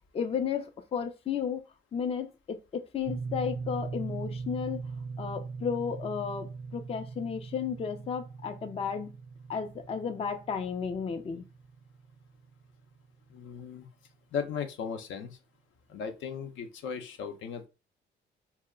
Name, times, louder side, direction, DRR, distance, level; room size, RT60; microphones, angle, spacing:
voice 1, 0.1-1.6 1.9-4.8 5.2-9.1 9.5-11.4, left 7 dB, 30° left, 0.4 m, -33 dB
sound 1, 3.0-13.0, right 4 dB, 40° right, 0.4 m, -40 dB
voice 2, 13.3-13.9 14.3-15.3 15.9-17.7, left 6 dB, 75° left, 0.6 m, -36 dB
2.2 x 2.0 x 3.5 m
cardioid pair, 90°, 20 cm